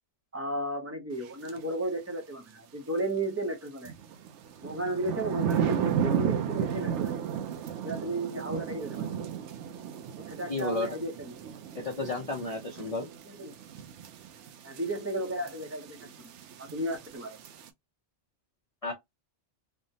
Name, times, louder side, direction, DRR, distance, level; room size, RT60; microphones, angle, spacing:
voice 1, 0.3-3.9 4.6-7.2 7.8-9.1 10.3-11.3 13.2-13.5 14.6-17.4, right 1 dB, 20° right, 0.5 m, -34 dB
sound 1, 1.5-1.6 3.9-17.7, right 8 dB, 80° right, 0.9 m, -34 dB
voice 2, 10.5-10.9 11.7-13.1 18.8-18.9, left 3 dB, 40° left, 0.6 m, -32 dB
3.4 x 2.0 x 2.7 m
omnidirectional pair, 1.2 m